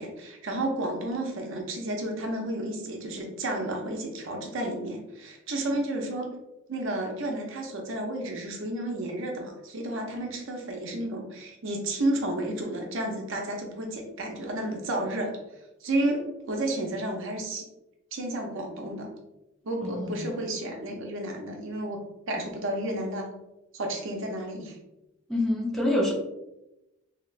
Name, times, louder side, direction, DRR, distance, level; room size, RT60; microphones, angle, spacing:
voice 1, 0.0-6.4 6.7-15.4 15.8-16.2 16.5-17.7 18.1-19.1 19.6-22.0 22.3-23.3 23.7-24.8, right 1 dB, 60° right, 2 dB, 0.6 m, -31 dB
voice 2, 19.8-20.3 25.3-26.1, left 1 dB, ahead, -3 dB, 0.5 m, -26 dB
3.2 x 2.8 x 2.4 m, 0.92 s
head